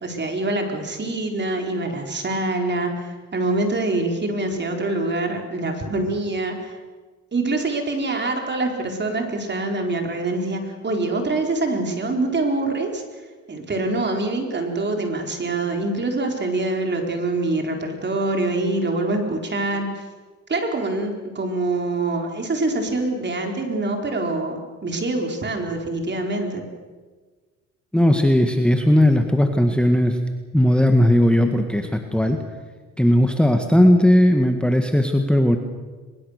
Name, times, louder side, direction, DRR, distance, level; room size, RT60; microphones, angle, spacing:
voice 1, 0.0-6.8 7.3-13.0 13.5-20.1 20.5-26.6, right 2 dB, 35° right, 3 dB, 4.4 m, -25 dB
voice 2, 27.9-30.2 30.5-32.4 33.0-35.6, left 1 dB, 5° left, 5 dB, 1.8 m, -17 dB
22.5 x 22.0 x 6.6 m, 1.4 s
cardioid pair, 90°, 30 cm